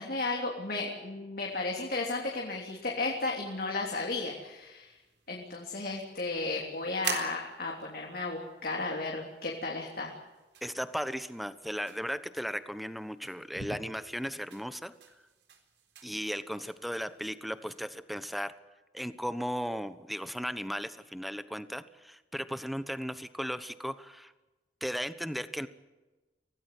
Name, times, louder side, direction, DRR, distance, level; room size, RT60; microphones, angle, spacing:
voice 1, 0.0-4.9 5.3-10.1 13.6-13.7, left 3 dB, 55° left, 0 dB, 3.2 m, -34 dB
sound 1, 1.4-17.9, right 7 dB, 80° right, 4.0 m, -48 dB
voice 2, 10.6-14.9 16.0-18.6 18.9-24.3 24.8-25.7, equal, ahead, 12 dB, 1.0 m, -36 dB
25.0 x 17.5 x 8.4 m, 1.1 s
head